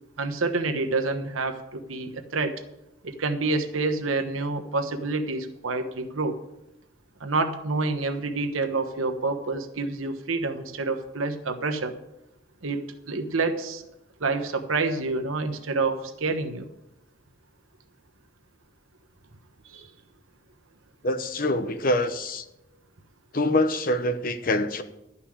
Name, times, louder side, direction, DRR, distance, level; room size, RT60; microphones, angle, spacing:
voice 1, 0.2-2.6 3.0-6.3 7.2-12.0 12.6-13.8 14.2-16.7 19.6-19.9, right 3 dB, 85° right, 6 dB, 1.2 m, -28 dB
voice 2, 21.0-22.4 23.3-24.8, left 1 dB, 45° left, 9 dB, 0.8 m, -25 dB
12.0 x 5.7 x 8.6 m, 0.89 s
head